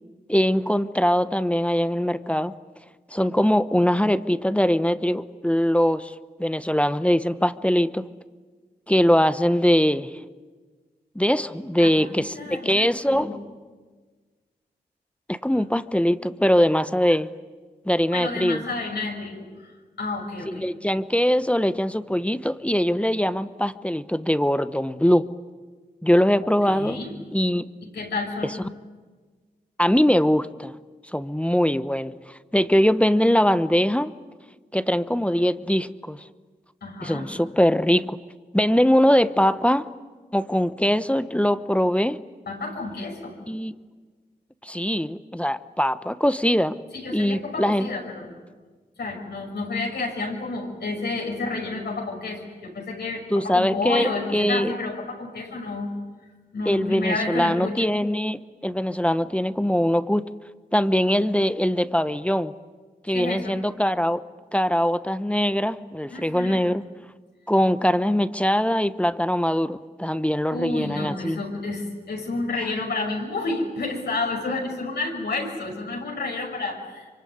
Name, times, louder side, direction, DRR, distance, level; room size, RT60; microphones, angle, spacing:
voice 1, 0.3-2.5 3.1-8.1 8.9-10.1 11.1-13.4 15.3-17.3 17.8-18.6 20.5-25.3 26.0-27.0 27.3-27.7 29.8-30.7 31.1-34.1 34.7-36.2 37.0-38.2 38.5-39.9 40.3-42.2 43.5-43.7 44.6-46.8 47.1-47.9 53.3-54.7 56.6-60.3 60.7-62.5 63.1-64.2 64.5-66.8 67.5-71.4, equal, 5° left, 13 dB, 1.1 m, -22 dB
voice 2, 11.8-13.4 15.5-15.6 18.1-20.7 26.4-27.1 27.9-28.5 36.8-37.3 42.5-43.3 46.9-48.3 49.0-55.9 56.5-57.8 63.1-63.5 66.1-66.6 70.5-77.2, left 3 dB, 80° left, 0 dB, 6.2 m, -30 dB
25.5 x 24.0 x 9.5 m, 1.4 s
cardioid pair, 45°, 17 cm